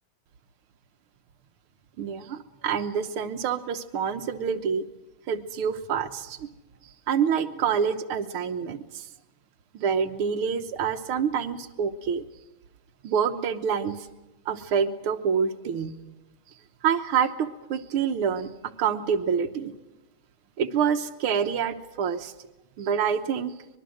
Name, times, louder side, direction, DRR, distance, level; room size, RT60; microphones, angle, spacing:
voice 1, 2.0-4.9 5.3-6.5 7.1-9.1 9.7-12.2 13.0-14.1 14.5-15.9 16.8-19.7 20.6-22.3 22.8-23.6, right 7 dB, 90° right, 9 dB, 2.0 m, -27 dB
24.5 x 21.5 x 6.4 m, 1.0 s
omnidirectional pair, 2.3 m